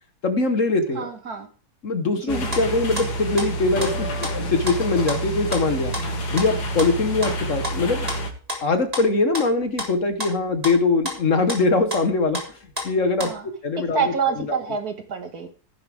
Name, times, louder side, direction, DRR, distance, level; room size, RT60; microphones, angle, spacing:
voice 1, 0.2-1.1 1.8-5.9 6.3-8.1 8.6-12.4 12.8-13.3 13.6-14.0 14.5-14.6, left 3 dB, 50° left, 8 dB, 1.5 m, -22 dB
voice 2, 0.9-1.5 2.2-2.6 13.2-13.5 13.9-15.5, right 6 dB, 60° right, 6 dB, 2.1 m, -27 dB
sound 1, 2.3-8.3, right 1 dB, 65° left, 2.4 m, -28 dB
sound 2, 2.5-3.1 3.4-3.9 4.2-4.8 5.1-5.6 5.9-7.3 7.6-9.9 10.2-12.5 12.8-13.4, left 1 dB, 20° right, 3.5 m, -31 dB
14.0 x 11.0 x 3.5 m, 0.37 s
omnidirectional pair, 1.9 m